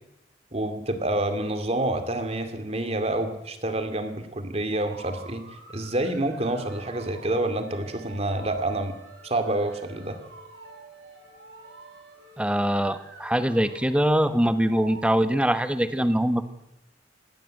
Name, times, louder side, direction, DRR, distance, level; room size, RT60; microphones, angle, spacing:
voice 1, 0.5-5.4 5.7-8.9 9.2-10.2, right 1 dB, 35° right, 8 dB, 2.5 m, -28 dB
sound 1, 4.7-15.0, right 3 dB, 85° right, 5.3 m, -47 dB
voice 2, 12.4-16.4, equal, 5° right, 10 dB, 1.2 m, -23 dB
20.0 x 17.0 x 7.9 m, 0.87 s
head